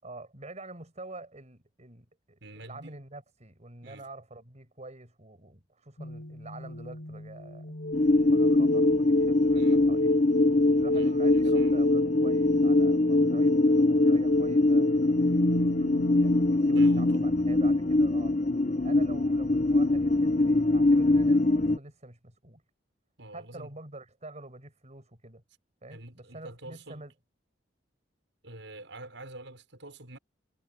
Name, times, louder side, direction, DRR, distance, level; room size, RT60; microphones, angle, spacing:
voice 1, 0.0-7.8 8.3-10.3 10.8-18.4 18.8-22.6 23.3-25.4 25.8-27.1, right 2 dB, 40° right, 6.7 m, -47 dB
voice 2, 2.4-2.9 3.8-4.1 9.5-9.9 10.9-11.8 16.7-17.1 23.2-23.7 25.9-27.0 28.4-30.2, right 2 dB, 80° right, 6.8 m, -46 dB
sound 1, 6.0-17.2, left 1 dB, 80° left, 1.6 m, -30 dB
sound 2, 7.9-21.8, left 2 dB, 40° left, 1.4 m, -23 dB
head